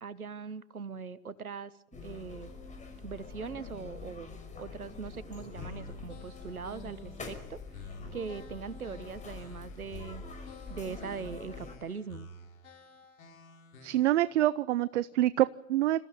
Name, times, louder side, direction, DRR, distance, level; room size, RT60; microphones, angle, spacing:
voice 1, 0.0-1.7 2.0-2.5 3.0-7.6 8.1-10.2 10.7-12.3, right 5 dB, 85° right, 16 dB, 1.4 m, -41 dB
sound 1, 1.9-11.8, left 4 dB, 15° left, 5.5 m, -45 dB
sound 2, 5.5-14.3, left 2 dB, 70° left, 4.3 m, -50 dB
voice 2, 13.8-16.0, right 14 dB, 55° right, 18 dB, 0.7 m, -26 dB
27.0 x 15.0 x 8.9 m, 0.91 s
figure-of-eight pair, 100°, 42 cm